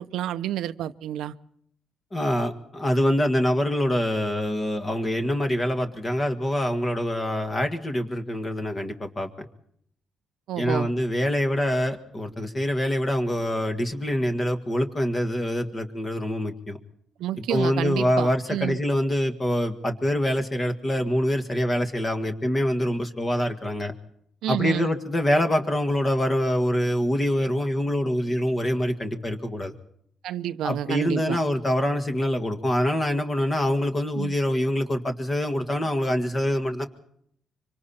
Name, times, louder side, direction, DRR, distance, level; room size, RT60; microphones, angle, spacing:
voice 1, 0.0-1.3 10.5-10.9 17.2-18.8 24.4-24.9 30.2-31.4 34.1-34.3, right 12 dB, 85° right, 0.8 m, -29 dB
voice 2, 2.1-9.5 10.6-16.8 17.5-23.9 24.5-29.7 30.6-36.9, equal, 20° left, 1.8 m, -25 dB
25.0 x 25.0 x 4.3 m
cardioid pair, 130°, 0 cm